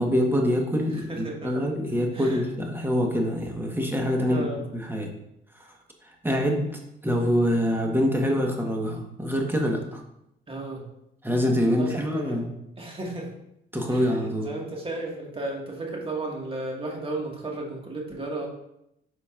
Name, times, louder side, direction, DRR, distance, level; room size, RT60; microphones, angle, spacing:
voice 1, 0.0-4.5 4.7-5.1 6.2-6.7 7.0-10.0 11.2-12.5 13.7-14.5, equal, 10° right, 1 dB, 1.4 m, -25 dB
voice 2, 0.9-1.5 2.1-2.4 4.2-4.6 10.5-10.8 11.7-12.4 12.8-13.3 13.9-18.5, right 2 dB, 25° right, -1 dB, 1.9 m, -34 dB
9.8 x 5.1 x 2.5 m, 0.81 s
cardioid pair, 90°, 20 cm